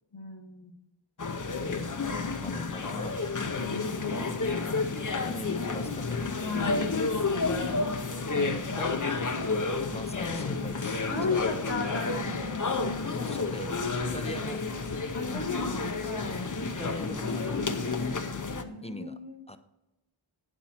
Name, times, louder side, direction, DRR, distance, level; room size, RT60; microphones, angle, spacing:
voice 1, 0.1-0.8 3.4-4.9 6.3-7.0 11.1-13.8 15.1-16.5 16.9-17.4 18.6-19.4, left 3 dB, 65° left, 4 dB, 1.6 m, -37 dB
sound 1, 1.2-18.6, left 3 dB, 40° left, 0.8 m, -30 dB
voice 2, 2.4-3.2 5.2-6.3 8.8-8.9 9.9-11.0 11.3-11.5 13.2-14.6 16.8-17.9 18.8-19.2 19.5-19.6, left 1 dB, 15° left, 10 dB, 0.6 m, -41 dB
9.1 x 7.3 x 4.3 m, 0.93 s
wide cardioid pair, 55°, 49 cm